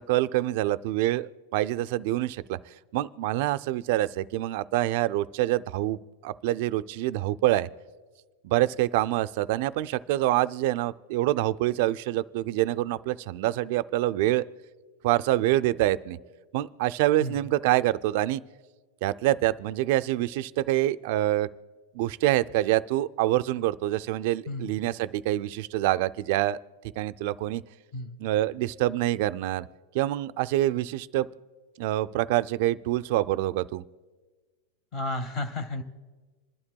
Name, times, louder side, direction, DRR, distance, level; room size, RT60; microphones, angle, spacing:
voice 1, 0.0-2.6 2.9-7.7 8.4-14.4 15.0-16.2 16.5-18.4 19.0-21.5 21.9-26.6 27.0-27.6 28.2-29.7 29.9-31.3 31.8-33.8, right 15 dB, 50° right, 14 dB, 0.4 m, -26 dB
voice 2, 34.9-35.8, left 2 dB, 25° left, 9 dB, 0.9 m, -32 dB
27.5 x 11.5 x 2.3 m, 1.4 s
supercardioid pair, 165°, 0 cm